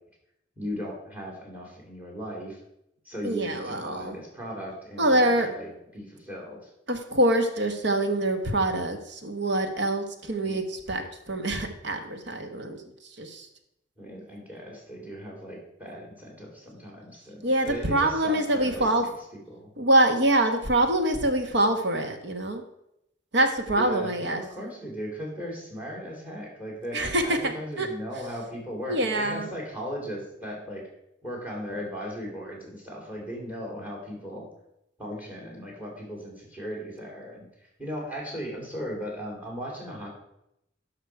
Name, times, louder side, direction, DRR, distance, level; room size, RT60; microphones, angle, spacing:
voice 1, 0.6-2.6 3.0-6.7 10.4-10.6 14.0-19.7 23.8-30.8 31.2-34.5 35.0-37.5 37.8-40.1, equal, 10° right, -1 dB, 2.9 m, -37 dB
voice 2, 3.2-4.2 5.0-5.5 6.9-12.8 13.2-13.5 17.4-19.0 19.8-22.6 23.3-24.4 26.9-27.5 27.8-27.9 28.9-29.5, right 1 dB, 65° right, 6 dB, 1.2 m, -25 dB
11.5 x 5.8 x 4.6 m, 0.82 s
head